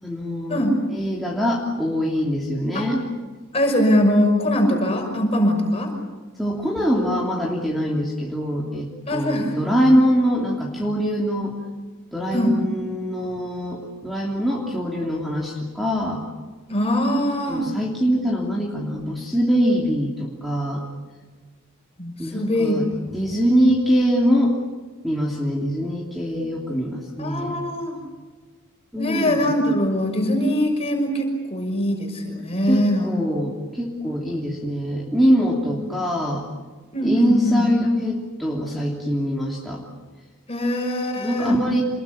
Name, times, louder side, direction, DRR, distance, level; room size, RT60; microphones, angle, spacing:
voice 1, 0.0-0.6 0.9-3.0 6.4-11.5 12.1-16.2 17.5-20.8 22.2-22.9 23.1-24.5 25.0-27.6 28.9-29.5 32.7-36.4 37.0-39.8 41.1-41.8, equal, ahead, -5 dB, 3.0 m, -23 dB
voice 2, 3.5-5.9 9.1-9.6 12.3-12.6 16.7-17.7 22.0-22.8 27.2-28.0 29.0-33.1 36.9-37.7 40.5-41.6, equal, 25° left, 2 dB, 5.9 m, -22 dB
27.5 x 21.5 x 8.6 m, 1.3 s
head